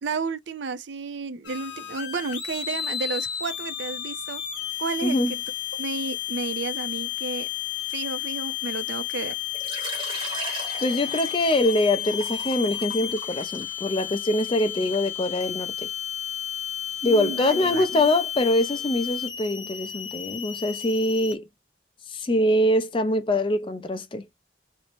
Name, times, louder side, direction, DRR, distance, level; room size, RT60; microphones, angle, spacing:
voice 1, 0.0-4.4 4.8-5.4 5.7-7.5 7.9-9.3 17.0-18.1, right 4 dB, 75° right, 0.4 m, -32 dB
sound 1, 1.4-21.3, left 12 dB, 80° left, 0.9 m, -32 dB
Water / Liquid, 9.5-15.1, right 3 dB, 25° right, 0.8 m, -38 dB
voice 2, 10.8-15.7 17.0-21.4 22.1-24.2, left 1 dB, 25° left, 0.4 m, -24 dB
2.6 x 2.0 x 2.9 m
head